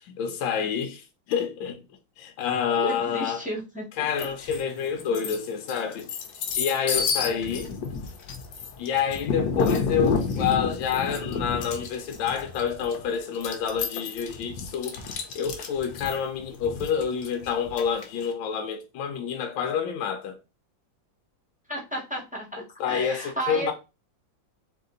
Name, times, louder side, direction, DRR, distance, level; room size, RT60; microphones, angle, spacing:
voice 1, 0.0-1.8 2.2-3.4 3.9-6.1 6.6-7.8 8.8-15.0 15.3-20.4 22.8-23.7, left 7 dB, 85° left, 1.4 m, -28 dB
voice 2, 2.8-3.8 21.7-23.7, right 1 dB, 5° right, 1.0 m, -33 dB
sound 1, 4.2-4.6 5.0-18.3, left 5 dB, 65° left, 1.2 m, -30 dB
4.0 x 2.8 x 3.8 m
omnidirectional pair, 2.1 m